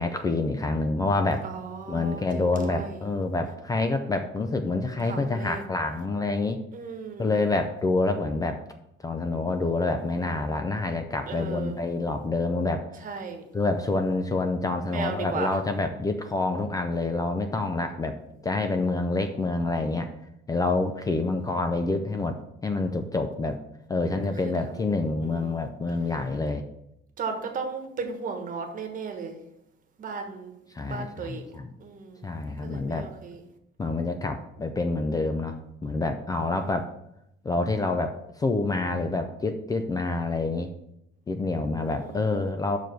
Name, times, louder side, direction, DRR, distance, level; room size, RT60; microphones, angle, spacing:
voice 1, 0.0-1.5 1.9-6.6 7.2-8.6 9.0-13.1 13.5-18.2 18.4-20.1 20.5-22.4 22.6-23.6 23.9-26.6 30.7-31.7 32.2-33.1 33.8-36.9 37.4-40.7 41.3-42.8, left 3 dB, 20° left, 6 dB, 0.4 m, -27 dB
voice 2, 1.4-2.2 2.5-3.0 5.0-5.6 6.7-7.3 11.2-11.7 13.0-13.4 14.9-15.5 25.2-25.5 27.2-29.3 30.0-30.5 30.9-31.4 31.8-32.2 32.6-33.4 42.0-42.2, right 5 dB, 40° right, 5 dB, 1.2 m, -35 dB
6.0 x 4.8 x 6.7 m, 0.82 s
cardioid pair, 170°, 20 cm